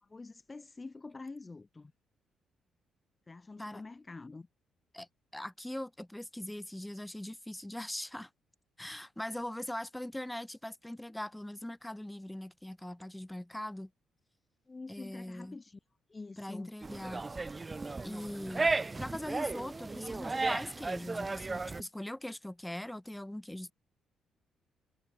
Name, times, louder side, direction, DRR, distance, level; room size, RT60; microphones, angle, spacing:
voice 1, 0.0-1.9 3.3-4.5 14.7-15.8 16.1-16.7, left 3 dB, 25° left, 0.8 m, -46 dB
voice 2, 5.3-8.3 8.8-13.9 14.9-15.6 16.4-17.3 18.0-18.7 19.0-23.7, left 1 dB, 5° left, 1.3 m, -41 dB
sound 1, 16.8-21.8, right 3 dB, 25° right, 0.6 m, -35 dB
cardioid pair, 90°, 0 cm